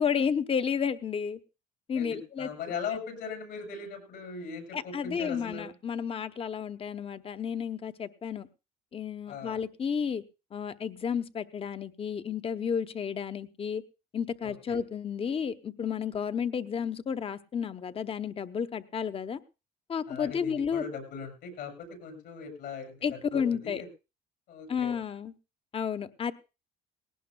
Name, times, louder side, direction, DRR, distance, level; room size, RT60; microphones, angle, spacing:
voice 1, 0.0-1.4 1.9-2.5 4.7-8.5 8.9-10.2 10.5-13.8 14.1-19.4 19.9-20.8 23.0-23.8 24.7-25.3 25.7-26.3, left 7 dB, 35° left, 13 dB, 0.9 m, -32 dB
voice 2, 1.9-5.7 9.3-9.6 14.4-14.8 20.1-23.0 23.3-23.9 24.5-24.9, left 5 dB, 75° left, 6 dB, 7.9 m, -39 dB
19.0 x 17.5 x 2.3 m, 0.29 s
cardioid pair, 110°, 17 cm